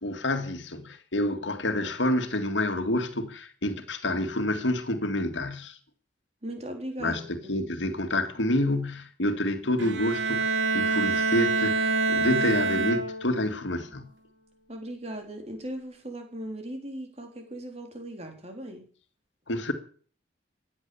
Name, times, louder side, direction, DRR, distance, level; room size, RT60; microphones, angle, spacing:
voice 1, 0.0-5.7 7.0-14.1 19.5-19.7, left 1 dB, 80° left, 2.0 m, -28 dB
voice 2, 6.4-7.3 7.5-7.6 14.7-18.8, right 1 dB, 35° right, 3.7 m, -38 dB
Bowed string instrument, 9.8-13.5, right 4 dB, 80° right, 2.3 m, -26 dB
16.0 x 10.5 x 6.9 m
head